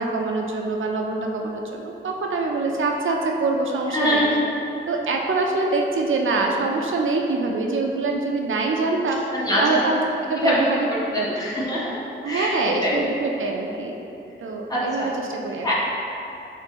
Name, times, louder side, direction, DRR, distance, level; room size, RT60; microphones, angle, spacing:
voice 1, 0.0-4.2 4.9-9.2 9.6-10.0 10.3-10.9 11.1-11.3 12.2-13.9 14.4-15.7, right 3 dB, 80° right, 1 dB, 0.4 m, -24 dB
voice 2, 3.9-4.4 9.3-9.9 10.4-10.6 11.1-12.0 12.2-12.5 12.8-13.0 14.7-15.1 15.6-15.7, equal, 20° left, -8 dB, 1.2 m, -23 dB
6.6 x 2.5 x 3.0 m, 2.8 s
wide cardioid pair, 80°, 20 cm